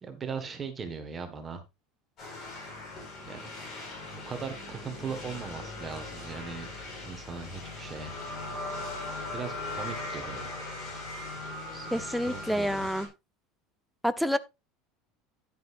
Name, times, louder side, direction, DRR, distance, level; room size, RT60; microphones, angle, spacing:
voice 1, 0.0-1.6 3.2-3.5 3.8-6.7 7.0-8.1 9.3-10.5 11.7-12.9, right 5 dB, 15° right, 1.5 m, -39 dB
sound 1, 2.2-13.1, left 2 dB, 30° left, 4.8 m, -39 dB
voice 2, 11.9-13.1 14.0-14.4, equal, ahead, 0.5 m, -28 dB
10.5 x 10.5 x 2.5 m
cardioid pair, 180°, 0 cm